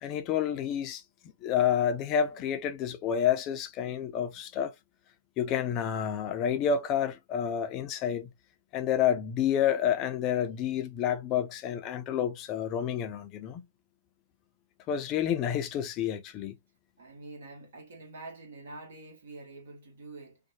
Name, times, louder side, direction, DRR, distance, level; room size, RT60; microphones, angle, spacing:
voice 1, 0.0-1.0 1.4-4.7 5.4-8.3 8.7-13.6 14.9-16.6, left 9 dB, 30° left, 0.5 m, -29 dB
voice 2, 17.0-20.4, right 2 dB, 65° right, 1.3 m, -46 dB
2.7 x 2.2 x 2.7 m
hypercardioid pair, 125°, 0 cm